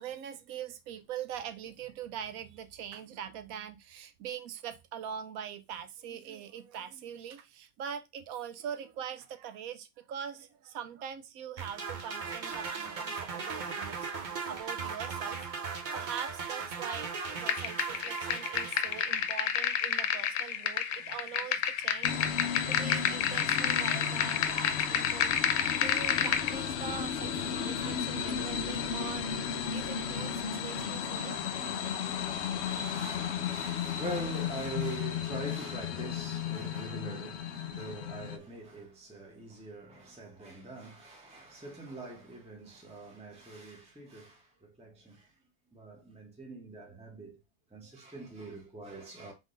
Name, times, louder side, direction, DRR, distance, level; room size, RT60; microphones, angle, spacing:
voice 1, 0.0-15.4 15.9-29.3 29.6-31.5, right 8 dB, 80° right, 1.1 m, -43 dB
sound 1, 11.6-19.3, right 5 dB, 40° right, 0.7 m, -38 dB
sound 2, 17.5-26.5, left 9 dB, 85° left, 1.0 m, -30 dB
sound 3, 22.0-38.4, left 7 dB, 65° left, 0.7 m, -34 dB
voice 2, 32.6-45.3 45.7-47.4 47.7-49.3, right 2 dB, 5° right, 1.0 m, -43 dB
3.6 x 3.6 x 3.8 m
omnidirectional pair, 1.5 m